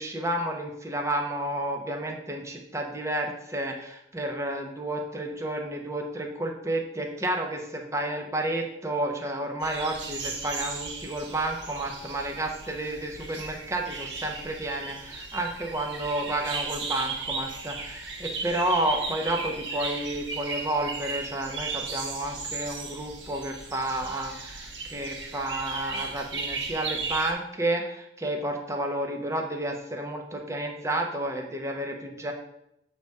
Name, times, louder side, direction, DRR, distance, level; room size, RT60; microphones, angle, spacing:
voice 1, 0.0-32.3, right 1 dB, 15° right, 2 dB, 0.8 m, -31 dB
sound 1, 9.6-27.3, right 4 dB, 80° right, 1.3 m, -36 dB
7.9 x 3.5 x 5.3 m, 0.82 s
head